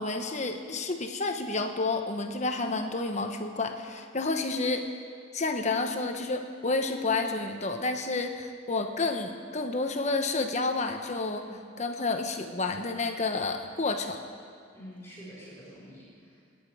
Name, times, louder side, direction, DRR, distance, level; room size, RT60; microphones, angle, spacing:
voice 1, 0.0-4.9 5.3-11.5 11.8-14.2, left 3 dB, 35° left, 5 dB, 1.1 m, -30 dB
voice 2, 14.7-16.4, equal, 15° left, -8 dB, 5.3 m, -47 dB
29.5 x 10.0 x 4.9 m, 2.2 s
head